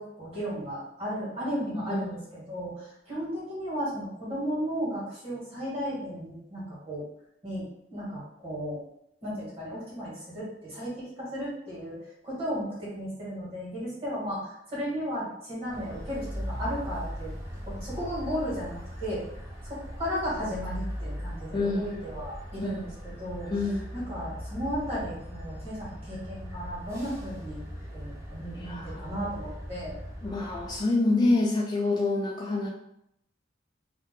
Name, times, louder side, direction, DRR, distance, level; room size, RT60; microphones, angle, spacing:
voice 1, 0.0-7.0 7.4-8.8 9.2-17.3 17.6-19.2 19.6-23.6 23.9-27.6 27.9-30.0, equal, 35° right, -7 dB, 1.4 m, -35 dB
sound 1, 15.7-30.8, equal, 15° right, 0.6 m, -39 dB
voice 2, 23.5-23.9 28.6-29.0 30.2-32.7, left 2 dB, 20° left, -2 dB, 0.3 m, -26 dB
2.7 x 2.1 x 3.5 m, 0.76 s
head